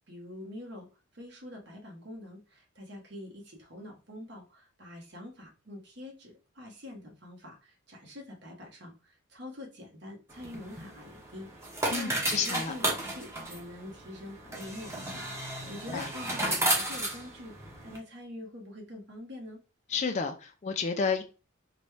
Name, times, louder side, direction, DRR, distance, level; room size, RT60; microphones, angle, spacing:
voice 1, 0.1-0.9 1.1-19.6, left 1 dB, 55° right, 0 dB, 1.2 m, -45 dB
sound 1, 10.3-18.0, right 1 dB, 15° right, 0.8 m, -33 dB
voice 2, 11.9-12.7 15.6-16.1 19.9-21.2, left 5 dB, 35° left, 4 dB, 0.4 m, -31 dB
4.0 x 2.3 x 3.2 m, 0.32 s
head